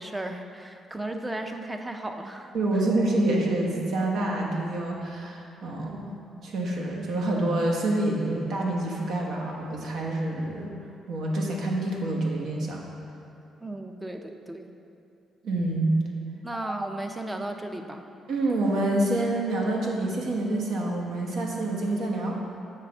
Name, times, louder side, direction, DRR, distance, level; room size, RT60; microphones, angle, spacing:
voice 1, 0.0-2.5 13.6-14.7 16.4-18.0, right 1 dB, 15° right, 5 dB, 0.5 m, -35 dB
voice 2, 2.5-6.0 6.4-10.7 11.1-12.8 15.4-15.9 18.3-22.4, right 2 dB, 70° right, -1 dB, 1.2 m, -27 dB
7.6 x 3.3 x 6.1 m, 2.8 s
cardioid pair, 90°, 0 cm